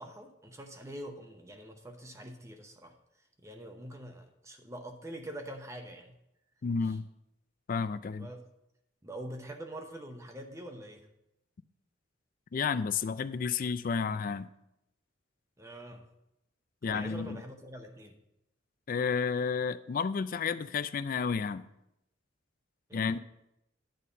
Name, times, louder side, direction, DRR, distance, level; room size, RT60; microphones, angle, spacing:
voice 1, 0.0-2.9 3.4-6.1 6.8-7.0 8.2-8.4 9.0-11.1 15.6-16.1 16.9-18.1 22.9-23.2, right 1 dB, 15° right, 5 dB, 0.8 m, -45 dB
voice 2, 6.6-7.0 7.7-8.3 12.5-14.5 16.8-17.4 18.9-21.6 22.9-23.2, left 5 dB, 45° left, 14 dB, 0.3 m, -31 dB
9.1 x 4.2 x 6.5 m, 0.84 s
head